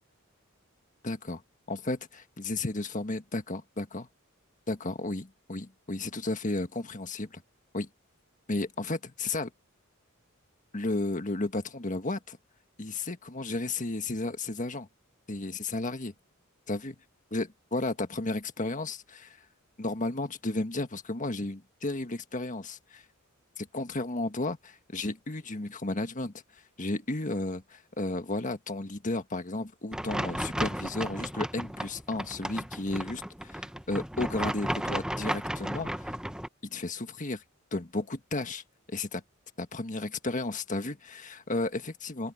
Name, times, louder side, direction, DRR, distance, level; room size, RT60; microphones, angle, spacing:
voice 1, 1.0-1.4 1.7-4.1 4.7-7.4 7.7-7.9 8.5-9.5 10.7-12.4 12.8-14.9 15.3-16.1 16.7-17.0 17.3-19.4 19.8-23.0 23.6-26.3 26.8-36.1 36.6-37.4 37.7-38.6 38.9-39.2 39.6-42.3, left 2 dB, 40° left, 1.6 m, -33 dB
sound 1, 29.9-36.5, right 1 dB, 5° right, 0.8 m, -34 dB
open air
head